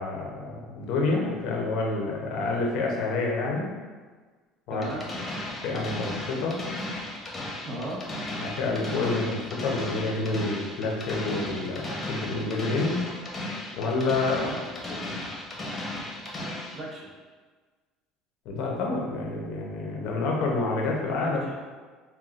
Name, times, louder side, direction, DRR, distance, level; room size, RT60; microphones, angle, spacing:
voice 1, 0.0-3.7 4.7-4.9 5.6-6.6 8.4-13.0 13.8-14.4 18.4-21.4, left 3 dB, 70° left, -1 dB, 0.7 m, -28 dB
voice 2, 4.7-5.1 7.6-8.0 14.3-14.6 16.7-17.1 21.2-21.5, right 2 dB, 35° right, -3 dB, 0.8 m, -36 dB
sound 1, 4.8-16.8, left 1 dB, 25° left, 0.9 m, -35 dB
5.6 x 2.2 x 2.4 m, 1.4 s
supercardioid pair, 110°, 0 cm